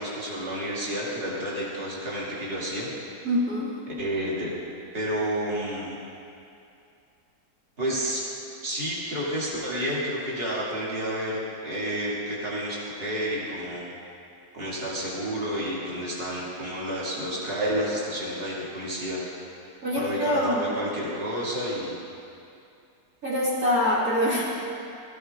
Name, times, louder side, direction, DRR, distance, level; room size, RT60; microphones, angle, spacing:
voice 1, 0.0-2.9 4.0-4.5 4.9-6.0 7.8-8.2 8.6-13.8 14.5-19.2 20.0-22.0, equal, 35° right, -7 dB, 2.8 m, -30 dB
voice 2, 3.2-3.7 19.8-20.8 23.2-24.4, left 1 dB, 55° right, -8 dB, 2.7 m, -24 dB
16.0 x 14.5 x 3.7 m, 2.6 s
omnidirectional pair, 1.8 m